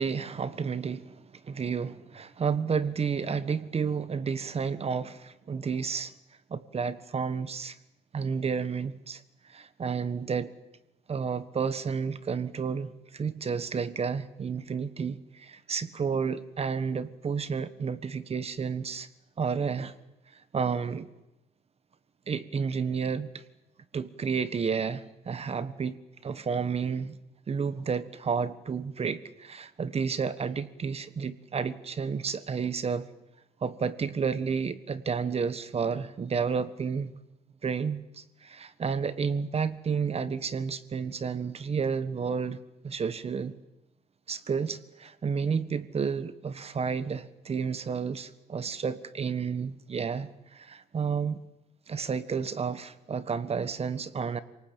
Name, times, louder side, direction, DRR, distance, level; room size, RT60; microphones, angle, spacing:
voice 1, 0.0-6.1 6.5-7.8 8.1-10.5 11.1-19.1 19.4-19.9 20.5-21.1 22.3-23.4 23.9-27.2 27.5-33.1 33.6-37.1 37.6-42.6 42.8-43.6 44.3-51.4 51.9-54.4, right 6 dB, 35° right, 14 dB, 1.5 m, -31 dB
27.0 x 19.0 x 8.9 m, 0.95 s
cardioid pair, 110°, 17 cm